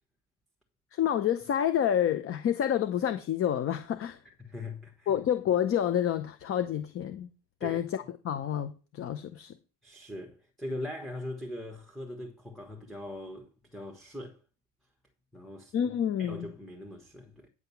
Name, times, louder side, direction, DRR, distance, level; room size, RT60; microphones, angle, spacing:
voice 1, 0.9-4.2 5.1-7.3 7.6-9.5 15.7-16.5, left 10 dB, 35° left, 0.7 m, -28 dB
voice 2, 4.4-5.1 7.6-8.1 9.8-14.4 15.3-15.9 16.2-17.5, left 1 dB, ahead, 1.2 m, -41 dB
9.5 x 5.7 x 7.0 m
cardioid pair, 165°, 41 cm